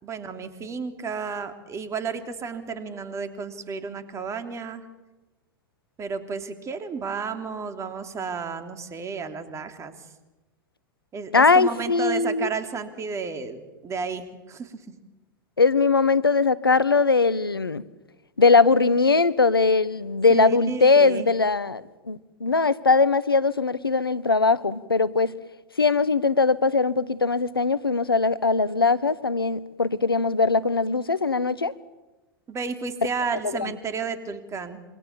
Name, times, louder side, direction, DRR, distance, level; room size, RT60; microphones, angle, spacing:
voice 1, 0.0-4.9 6.0-9.9 11.1-14.8 20.3-21.3 32.5-34.8, right 5 dB, 25° right, 7 dB, 3.1 m, -32 dB
voice 2, 11.3-12.5 15.6-17.8 18.4-25.3 25.8-31.7 33.4-33.7, left 4 dB, 90° left, 17 dB, 1.0 m, -21 dB
27.0 x 25.5 x 7.3 m, 1.1 s
figure-of-eight pair, 95°, 12 cm